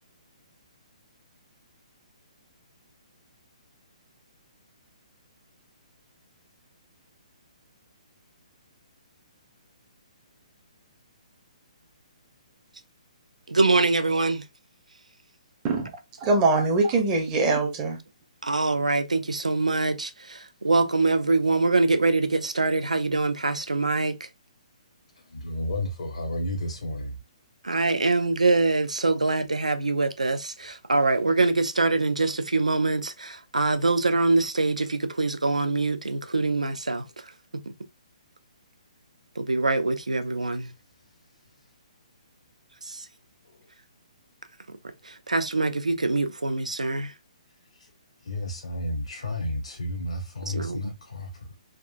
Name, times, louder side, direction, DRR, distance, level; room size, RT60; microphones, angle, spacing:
voice 1, 13.5-14.4 18.4-24.1 27.6-37.0 39.4-40.7 45.3-47.1 50.5-50.8, right 3 dB, 75° right, 0.4 m, -24 dB
voice 2, 15.6-18.0, right 3 dB, 20° right, 0.6 m, -23 dB
voice 3, 25.3-27.1 48.3-51.5, left 1 dB, 60° left, 0.8 m, -32 dB
3.5 x 2.5 x 2.3 m
figure-of-eight pair, 130°, 4 cm